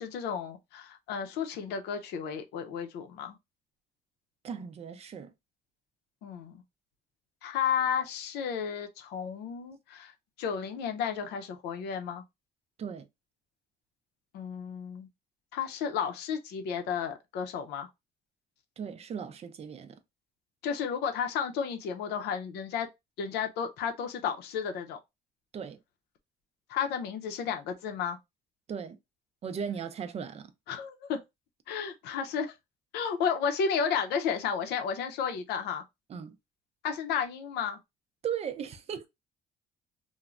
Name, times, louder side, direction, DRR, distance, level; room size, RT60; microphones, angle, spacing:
voice 1, 0.0-3.4 6.2-6.6 7.4-10.1 10.4-12.2 14.3-15.1 15.5-17.9 20.6-22.9 23.2-25.0 26.7-28.2 30.7-31.2 31.7-32.5 32.9-35.8 36.8-37.8, left 7 dB, 80° left, 0.6 m, -32 dB
voice 2, 4.4-5.3 12.8-13.1 18.8-20.0 25.5-25.8 28.7-29.0 29.4-30.5 36.1-36.4 38.2-39.1, right 7 dB, 40° right, 0.5 m, -37 dB
3.1 x 2.1 x 2.4 m
cardioid pair, 110°, 17 cm